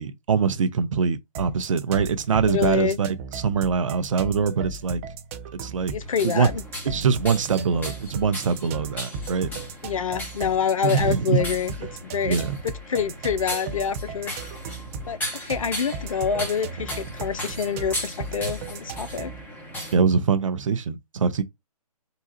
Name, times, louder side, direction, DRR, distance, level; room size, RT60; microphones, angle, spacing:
voice 1, 0.0-5.0 5.6-5.9 6.2-6.5 6.8-9.5 10.8-11.4 12.2-12.6 19.9-21.4, right 6 dB, 55° right, 0.8 m, -23 dB
sound 1, 1.3-19.5, right 4 dB, 20° right, 0.5 m, -36 dB
voice 2, 2.5-3.0 5.8-6.6 9.8-12.4 12.6-14.3 15.1-19.3, left 7 dB, 55° left, 0.6 m, -26 dB
sound 2, 6.0-20.0, equal, 10° left, 1.1 m, -37 dB
3.8 x 2.4 x 4.3 m
figure-of-eight pair, 135°, 20 cm